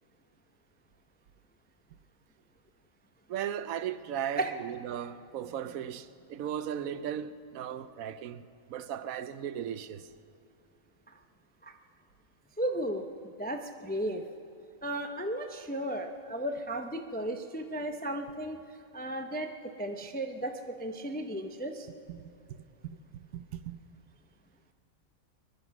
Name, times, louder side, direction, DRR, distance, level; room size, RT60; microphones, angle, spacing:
voice 1, 3.3-8.4 8.7-10.1 22.1-22.3 22.8-23.0 23.3-23.8, right 9 dB, 85° right, 1.1 m, -37 dB
voice 2, 12.6-13.0 13.4-14.2 14.8-18.6 18.9-19.5 19.8-20.5 20.8-21.9, right 1 dB, 10° left, 0.5 m, -34 dB
21.5 x 11.5 x 6.0 m
omnidirectional pair, 1.4 m